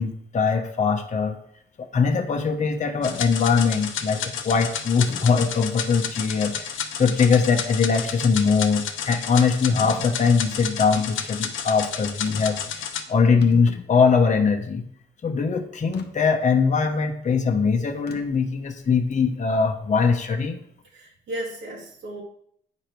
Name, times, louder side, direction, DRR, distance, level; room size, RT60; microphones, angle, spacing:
voice 1, 0.0-1.4 1.8-6.7 7.0-12.6 13.1-14.8 15.2-20.6, left 5 dB, 40° left, 4 dB, 1.1 m, -21 dB
sound 1, 3.0-13.0, left 7 dB, 80° left, 1.0 m, -32 dB
sound 2, 3.1-3.3 4.2-4.3 5.1-5.6 6.2-6.3 9.7-10.1 12.3-12.6 12.9-13.0 13.3-14.3 15.9-16.1 18.1-18.5, left 6 dB, 55° left, 1.1 m, -40 dB
voice 2, 20.8-22.2, right 1 dB, 85° right, -5 dB, 2.5 m, -35 dB
9.6 x 5.0 x 4.6 m, 0.67 s
cardioid pair, 90°, 20 cm